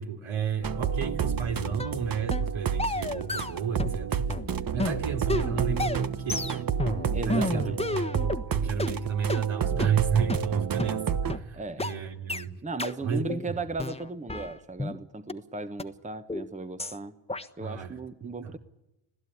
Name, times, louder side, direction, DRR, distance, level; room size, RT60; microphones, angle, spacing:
voice 1, 0.0-4.3 4.7-6.7 7.2-12.5 13.0-13.6 17.6-17.9 18.2-18.5, right 6 dB, 65° right, 3 dB, 3.4 m, -31 dB
sound 1, 0.6-11.4, right 7 dB, 45° right, 1.2 m, -30 dB
sound 2, 1.8-2.0 2.3-2.5 2.8-4.0 4.3-8.4 8.8-8.9 9.3-9.4 9.8-9.9 10.3-10.4 10.8-10.9 11.3-11.4 11.8-11.9 12.3-12.4 12.8-12.9 13.3-13.5 13.8-15.0 15.3-15.4 15.8-15.9 16.3-16.5 16.8-17.0 17.3-17.5, left 2 dB, 10° left, 1.3 m, -31 dB
voice 2, 7.1-7.8 11.5-11.9 12.6-17.1 17.6-18.6, right 3 dB, 15° right, 10 dB, 1.2 m, -36 dB
26.0 x 16.0 x 9.8 m, 0.94 s
cardioid pair, 75°, 50 cm